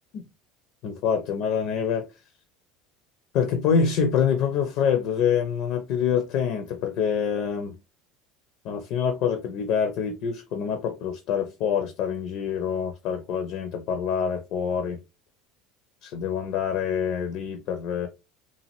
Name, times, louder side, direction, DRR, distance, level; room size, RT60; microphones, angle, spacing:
voice 1, 0.8-2.1 3.3-7.8 8.6-15.0 16.0-18.1, left 7 dB, 55° left, 0.4 m, -26 dB
2.7 x 2.4 x 2.9 m
figure-of-eight pair, 70°, 0 cm